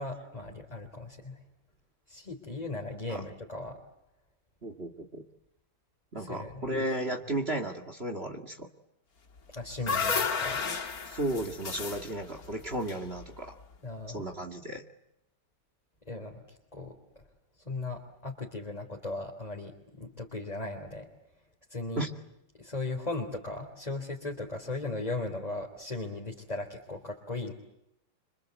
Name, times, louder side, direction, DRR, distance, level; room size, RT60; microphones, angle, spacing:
voice 1, 0.0-1.4 2.1-3.8 6.2-6.9 9.5-10.6 13.8-14.2 16.1-17.2 17.7-21.1 21.7-22.1 22.6-27.5, left 2 dB, 20° left, 0 dB, 3.5 m, -37 dB
voice 2, 4.6-5.2 6.1-8.7 11.1-13.5 14.1-14.8 21.9-22.1, right 1 dB, 35° right, 5 dB, 2.4 m, -34 dB
sound 1, 9.4-13.6, left 5 dB, 55° left, 2.3 m, -33 dB
26.5 x 26.0 x 8.2 m, 0.81 s
omnidirectional pair, 1.9 m